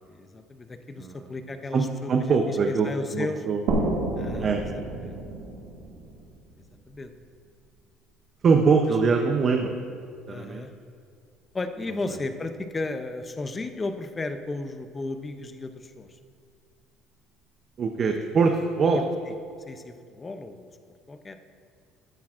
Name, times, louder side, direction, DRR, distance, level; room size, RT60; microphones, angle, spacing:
voice 1, 0.1-3.4 4.2-5.2 6.9-7.1 10.3-10.7 11.5-16.2 18.9-19.3 19.7-20.6 21.1-21.4, left 2 dB, 15° left, 8 dB, 0.5 m, -34 dB
voice 2, 1.7-2.9 3.1-3.6 4.4-4.6 8.4-9.7 10.3-10.7 17.8-19.0, right 5 dB, 35° right, 4 dB, 0.6 m, -23 dB
sound 1, 3.7-7.2, right 2 dB, 75° right, 2.0 m, -30 dB
13.5 x 10.0 x 2.5 m, 2.2 s
cardioid pair, 155°, 0 cm